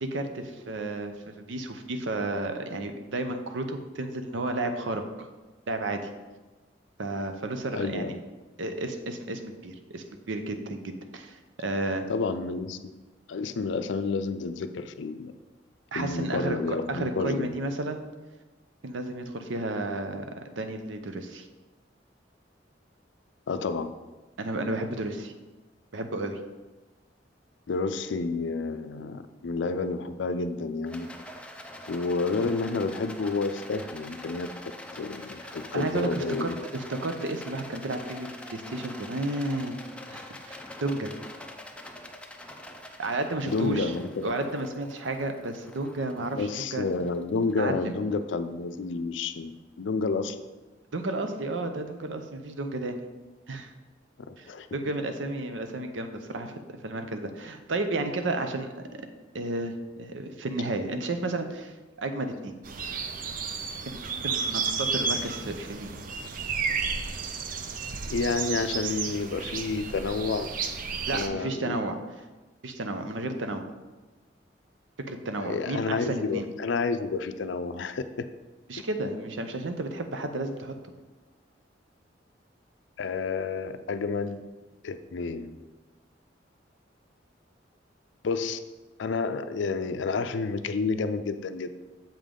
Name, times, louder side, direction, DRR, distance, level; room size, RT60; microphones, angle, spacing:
voice 1, 0.0-5.3 5.7-6.0 7.0-8.2 8.6-12.0 15.9-18.0 18.8-20.3 20.6-21.5 24.4-25.3 25.9-26.4 35.4-39.8 40.1-41.1 43.0-43.9 44.2-46.9 47.6-47.9 50.9-53.0 53.5-53.7 54.4-59.1 59.3-59.7 60.0-62.5 63.9-64.0 64.2-65.9 71.1-72.0 72.6-73.6 75.1-76.5 78.7-80.7, right 2 dB, 90° right, 7 dB, 0.7 m, -32 dB
voice 2, 7.7-8.2 12.1-12.8 13.3-15.3 15.9-17.6 23.5-23.9 27.7-31.1 31.9-34.5 35.0-36.6 43.5-44.4 46.3-49.5 49.8-50.4 54.3-54.7 68.1-70.5 71.1-71.8 75.4-78.2 83.0-84.4 84.8-85.6 88.2-88.6 89.0-91.7, left 4 dB, 75° left, 11 dB, 0.4 m, -30 dB
Rattle, 30.9-48.2, left 1 dB, 5° left, 0.5 m, -45 dB
sound 1, 62.6-71.3, right 5 dB, 50° right, 0.5 m, -32 dB
7.2 x 5.3 x 3.7 m, 1.2 s
head